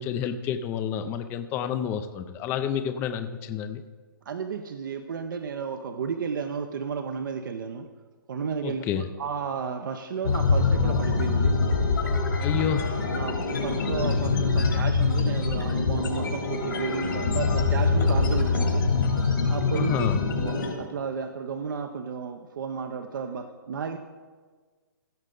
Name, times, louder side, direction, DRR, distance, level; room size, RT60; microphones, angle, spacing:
voice 1, 0.0-3.8 8.6-9.1 12.4-12.9 19.7-20.2, left 8 dB, 20° left, 9 dB, 0.4 m, -29 dB
voice 2, 4.3-7.9 8.3-11.5 12.5-12.6 13.1-18.8 19.5-24.0, right 6 dB, 65° right, 6 dB, 0.7 m, -33 dB
sound 1, 10.2-20.7, left 4 dB, 75° left, 2.9 m, -24 dB
16.0 x 6.5 x 3.8 m, 1.5 s
hypercardioid pair, 145°, 12 cm